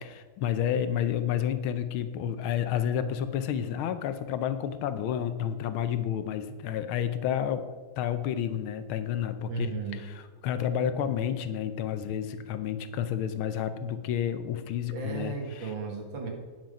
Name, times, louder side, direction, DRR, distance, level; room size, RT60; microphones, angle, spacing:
voice 1, 0.0-15.7, left 9 dB, 75° left, 11 dB, 1.5 m, -30 dB
voice 2, 9.5-10.0 14.9-16.3, right 5 dB, 60° right, 2 dB, 2.3 m, -35 dB
9.6 x 7.5 x 5.2 m, 1.3 s
omnidirectional pair, 2.4 m